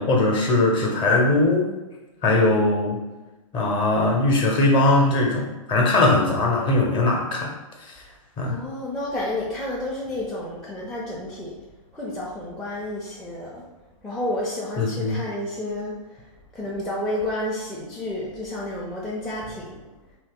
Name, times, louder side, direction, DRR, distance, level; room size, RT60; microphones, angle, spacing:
voice 1, 0.0-1.7 2.2-3.0 3.5-7.5 8.4-8.6 14.8-15.2, left 2 dB, 30° left, -1 dB, 0.8 m, -20 dB
voice 2, 8.4-11.6 11.9-13.6 14.0-16.2 16.5-19.8, left 1 dB, 5° left, -7 dB, 0.4 m, -30 dB
2.8 x 2.0 x 3.5 m, 1.1 s
hypercardioid pair, 120°, 18 cm